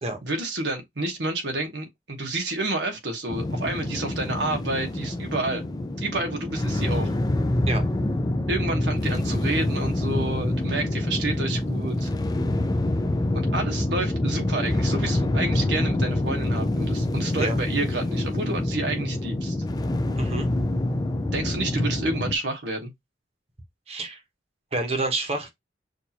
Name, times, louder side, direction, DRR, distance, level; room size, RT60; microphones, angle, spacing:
voice 1, 0.2-5.6 6.0-7.1 8.5-12.1 13.3-19.6 21.3-22.9, right 2 dB, 80° right, 1.3 m, -29 dB
sound 1, 3.3-22.3, left 1 dB, 20° left, 0.5 m, -26 dB
voice 2, 20.2-20.5 23.9-24.2 24.7-25.5, right 2 dB, 35° right, 1.1 m, -28 dB
6.4 x 2.7 x 2.8 m
head